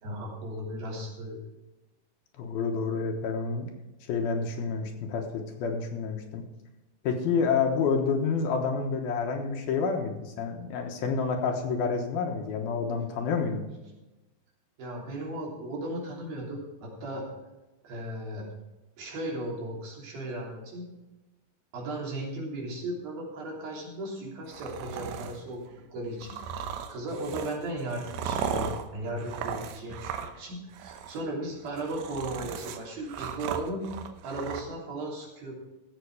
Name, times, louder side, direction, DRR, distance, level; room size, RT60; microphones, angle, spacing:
voice 1, 0.0-1.4 14.8-17.3 17.8-18.5 19.0-20.9 21.7-33.9 34.2-35.5, right 1 dB, 65° right, -3 dB, 4.9 m, -36 dB
voice 2, 2.4-3.7 4.0-6.4 7.0-13.7, left 5 dB, 70° left, 3 dB, 2.8 m, -29 dB
sound 1, 24.5-25.4 26.2-30.5 30.7-31.2 31.7-34.6, right 7 dB, 85° right, 3.1 m, -36 dB
15.0 x 7.7 x 4.8 m, 1.1 s
omnidirectional pair, 4.7 m